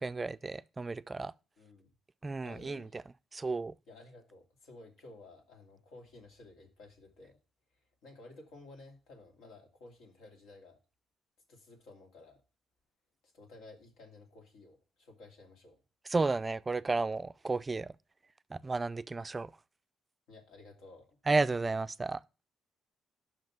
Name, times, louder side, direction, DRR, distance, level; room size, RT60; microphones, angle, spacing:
voice 1, 0.0-1.3 2.2-2.9 3.3-3.7 16.1-17.9 18.5-19.5 21.3-22.2, right 3 dB, 25° right, 0.3 m, -32 dB
voice 2, 1.6-1.9 2.4-3.1 3.9-7.4 8.0-10.8 11.5-12.4 13.2-15.8 20.3-21.2, left 2 dB, 85° left, 2.5 m, -54 dB
5.9 x 5.4 x 5.8 m
cardioid pair, 90°, 0 cm